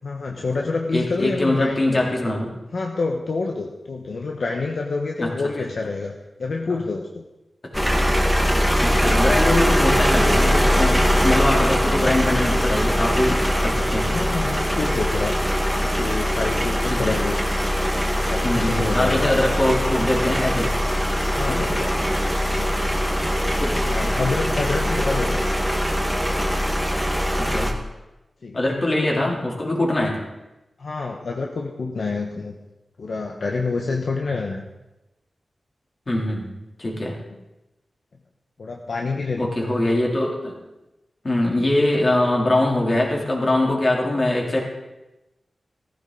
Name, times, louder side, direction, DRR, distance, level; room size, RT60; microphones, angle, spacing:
voice 1, 0.0-2.0 2.7-7.2 11.9-12.1 14.0-15.4 15.8-17.5 18.2-19.3 21.3-21.9 22.6-22.7 23.9-25.4 28.4-28.6 30.8-32.5 33.0-34.6 38.6-39.5 39.8-39.9, left 3 dB, 65° left, 1 dB, 1.2 m, -27 dB
voice 2, 0.9-2.5 5.2-5.3 7.6-7.7 8.8-14.3 16.9-17.2 18.4-20.8 21.5-21.7 23.6-24.1 27.4-27.7 28.5-30.2 36.1-36.5 36.8-37.2 39.4-40.6 41.2-44.6, left 1 dB, 35° left, -2 dB, 3.5 m, -23 dB
sound 1, 7.7-27.7, equal, ahead, 1.7 m, -21 dB
16.0 x 14.5 x 4.1 m, 1.0 s
wide cardioid pair, 115°, 0 cm